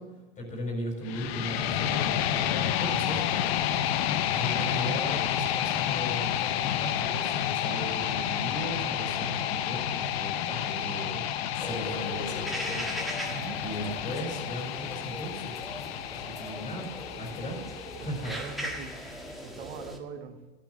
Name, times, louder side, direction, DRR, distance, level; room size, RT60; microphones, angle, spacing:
voice 1, 0.0-13.3 13.6-15.6 16.1-17.7 18.0-18.3, equal, 25° left, 2 dB, 4.6 m, -38 dB
sound 1, 1.0-19.1, left 10 dB, 65° left, 1.0 m, -30 dB
sound 2, 11.6-20.0, equal, ahead, 1.5 m, -39 dB
voice 2, 13.2-13.6 18.0-19.0 19.4-20.4, right 7 dB, 65° right, 6 dB, 1.7 m, -42 dB
13.0 x 9.3 x 6.4 m, 1.3 s
supercardioid pair, 125°, 33 cm